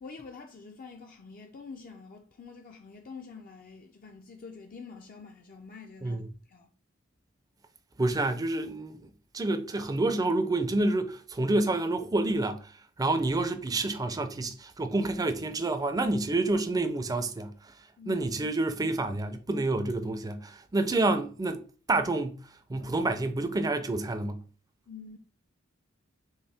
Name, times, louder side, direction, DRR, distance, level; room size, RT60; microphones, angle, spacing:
voice 1, 0.0-6.2 6.5-6.7 18.0-18.2 24.9-25.2, left 5 dB, 45° left, 0.4 m, -46 dB
voice 2, 8.0-17.5 18.1-21.6 21.9-24.4, right 2 dB, 20° right, 0.4 m, -28 dB
4.4 x 3.0 x 3.4 m
head